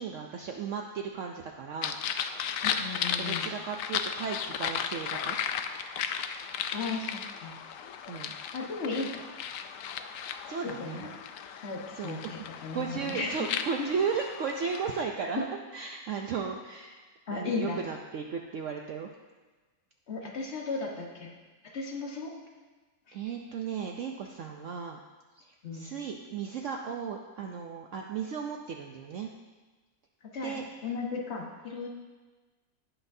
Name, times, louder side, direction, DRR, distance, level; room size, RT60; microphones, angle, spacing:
voice 1, 0.0-2.0 3.2-5.4 8.1-8.3 10.5-11.1 11.9-12.4 12.7-15.4 15.7-17.0 17.3-19.1 23.1-25.0 25.4-25.5 25.7-29.3 30.4-30.6, right 6 dB, 65° right, 2 dB, 0.8 m, -35 dB
sound 1, 1.8-15.0, left 8 dB, 70° left, 0.8 m, -35 dB
voice 2, 2.6-3.5 6.7-7.6 8.5-9.2 10.6-11.1 11.6-13.5 13.8-13.9 15.2-15.4 17.3-17.8 20.1-21.3 21.6-22.3 23.1-23.2 25.6-25.9 30.3-31.9, left 4 dB, 45° left, 0 dB, 1.4 m, -35 dB
18.0 x 5.9 x 2.7 m, 1.3 s
omnidirectional pair, 1.7 m